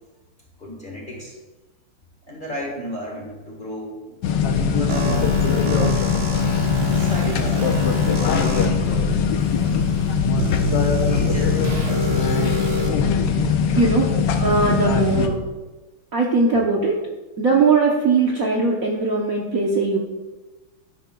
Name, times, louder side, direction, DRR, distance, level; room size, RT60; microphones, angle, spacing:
voice 1, 0.6-1.4 2.3-5.5 6.8-7.6 8.1-9.2 9.5-9.8 11.0-12.2, left 1 dB, 25° left, -1 dB, 1.4 m, -34 dB
sound 1, 4.2-15.3, left 6 dB, 65° left, 1.2 m, -21 dB
sound 2, 4.9-8.6 9.4-9.5 10.4-12.9, equal, 90° right, 0.5 m, -27 dB
voice 2, 13.8-14.1 14.4-15.4 16.1-16.9 17.4-20.0, right 4 dB, 55° right, -2 dB, 1.1 m, -19 dB
11.0 x 10.0 x 2.3 m, 1.2 s
omnidirectional pair, 2.3 m